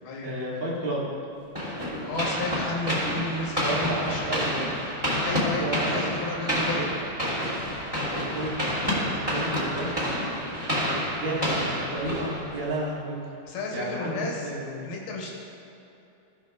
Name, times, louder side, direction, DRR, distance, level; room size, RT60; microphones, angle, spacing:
voice 1, 0.2-1.1 3.5-4.5 5.5-7.0 8.0-8.6 9.0-9.9 11.1-13.2 13.7-14.8, right 1 dB, 45° right, -7 dB, 1.0 m, -32 dB
sound 1, 1.5-12.8, equal, 25° right, 0.8 m, -29 dB
voice 2, 2.0-4.3 5.2-6.8 13.4-14.5 14.8-15.3, left 2 dB, 80° left, -1 dB, 2.9 m, -33 dB
15.5 x 5.9 x 2.3 m, 2.8 s
omnidirectional pair, 4.2 m